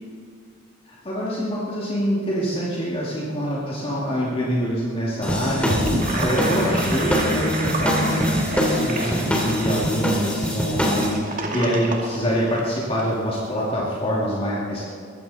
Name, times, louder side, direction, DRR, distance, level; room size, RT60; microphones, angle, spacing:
voice 1, 0.9-14.9, equal, 30° left, -6 dB, 2.5 m, -25 dB
sound 1, 5.2-11.1, equal, 5° left, 2.9 m, -24 dB
Gurgling / Sink (filling or washing), 5.5-13.0, right 1 dB, 40° right, 2.3 m, -29 dB
21.0 x 15.0 x 4.2 m, 2.3 s
head